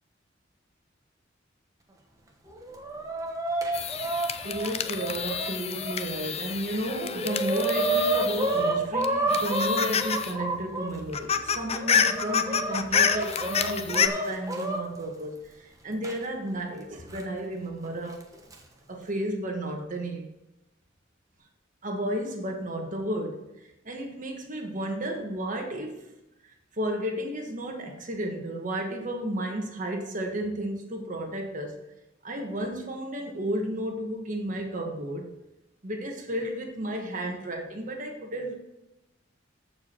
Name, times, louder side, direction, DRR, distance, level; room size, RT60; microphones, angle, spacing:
Chicken rooster, 2.5-5.9 6.5-6.6 6.9-10.9 11.5-14.8 16.0-16.1 17.1-17.2 18.2-18.5, right 2 dB, 20° right, 1.2 m, -29 dB
sound 1, 3.7-8.7 9.0-10.3 10.6-10.7 11.0-14.1, left 7 dB, 35° left, 0.5 m, -28 dB
voice 1, 4.4-18.2 18.9-20.3 21.8-23.5 23.8-26.1 26.7-31.8 32.2-35.3 35.8-38.5, right 1 dB, 45° right, 2 dB, 1.5 m, -33 dB
14.5 x 4.9 x 4.5 m, 0.94 s
head